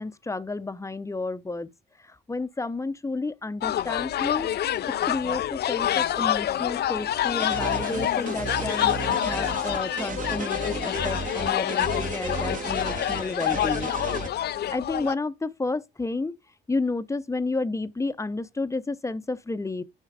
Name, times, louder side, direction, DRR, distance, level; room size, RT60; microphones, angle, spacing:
voice 1, 0.0-1.7 2.0-13.9 14.7-16.4 16.7-19.8, left 3 dB, 15° left, 0.7 m, -31 dB
sound 1, 3.6-15.1, left 12 dB, 55° left, 0.4 m, -27 dB
sound 2, 5.2-12.3, right 5 dB, 80° right, 1.9 m, -54 dB
sound 3, 7.4-14.3, right 4 dB, 40° right, 1.4 m, -34 dB
10.0 x 4.5 x 4.9 m
cardioid pair, 90°, 20 cm